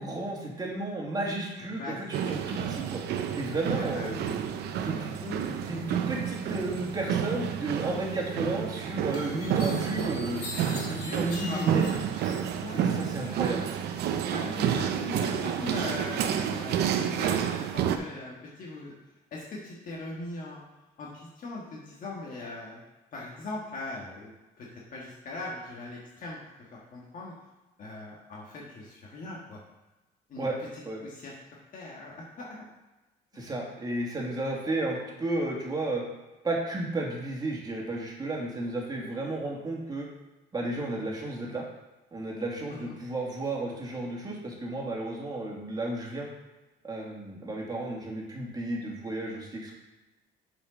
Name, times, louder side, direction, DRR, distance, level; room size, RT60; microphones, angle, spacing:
voice 1, 0.0-3.0 3.4-4.1 4.8-5.1 5.5-10.4 10.7-11.8 12.7-13.7 30.4-30.5 30.9-31.0 33.3-36.0 36.4-40.1 40.5-41.6 42.1-46.3 46.8-49.7, right 2 dB, 25° right, -2 dB, 2.3 m, -33 dB
sound 1, 2.1-18.0, right 9 dB, 75° right, 0.7 m, -30 dB
voice 2, 3.7-4.3 4.6-5.5 11.4-12.1 12.6-13.4 14.3-18.9 19.3-20.6 21.0-22.8 23.1-24.3 24.6-27.3 27.8-29.6 30.3-31.3 31.7-32.6 42.7-43.0, left 2 dB, 50° left, -3 dB, 1.7 m, -40 dB
sound 2, 8.4-8.5 9.1-12.8 13.1-13.9, left 3 dB, 85° left, 2.7 m, -42 dB
7.1 x 5.3 x 5.1 m, 1.1 s
cardioid pair, 110°, 17 cm